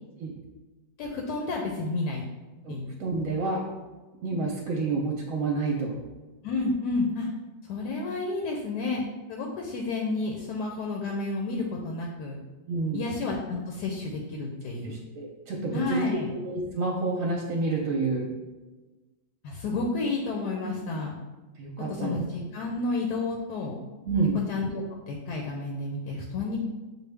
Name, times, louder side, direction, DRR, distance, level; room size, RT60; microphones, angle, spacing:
voice 1, 1.0-2.2 2.7-2.9 6.4-7.3 7.6-9.0 9.3-12.4 12.9-15.0 15.7-16.3 19.4-21.1 21.9-23.8 24.5-26.6, left 3 dB, 75° left, 0 dB, 1.2 m, -31 dB
voice 2, 2.6-3.6 4.2-5.9 12.7-13.0 14.8-16.0 16.3-18.3 21.6-22.2 24.0-24.4, right 3 dB, 65° right, -1 dB, 0.9 m, -29 dB
6.3 x 2.3 x 3.3 m, 1.2 s
omnidirectional pair, 1.8 m